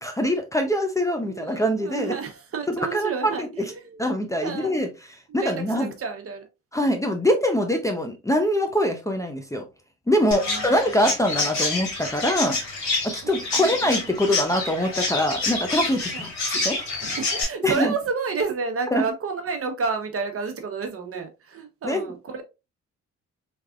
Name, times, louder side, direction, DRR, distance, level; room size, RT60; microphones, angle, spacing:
voice 1, 0.0-2.1 2.7-3.3 4.0-4.9 5.3-5.9 6.7-9.6 10.1-12.6 13.0-16.3 16.6-16.8 17.6-17.9 18.9-19.0 21.8-22.1, equal, 10° left, 0.6 m, -23 dB
voice 2, 1.2-4.1 4.4-4.8 5.3-6.5 10.2-10.6 13.2-13.9 16.1-16.3 17.0-22.4, right 5 dB, 50° right, 1.0 m, -31 dB
Chirp tweet, 10.3-17.4, left 3 dB, 65° left, 2.3 m, -28 dB
3.4 x 3.3 x 2.4 m
cardioid pair, 90°, 30 cm